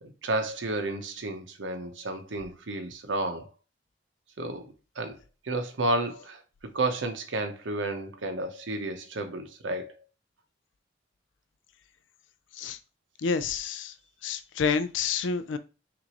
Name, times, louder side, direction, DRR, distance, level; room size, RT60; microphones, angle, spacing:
voice 1, 0.0-3.5 4.4-5.2 5.4-6.4 6.7-9.9, right 2 dB, 85° right, 0.8 m, -31 dB
voice 2, 13.2-13.9 14.2-15.6, left 5 dB, 85° left, 0.5 m, -28 dB
6.0 x 2.6 x 3.0 m
head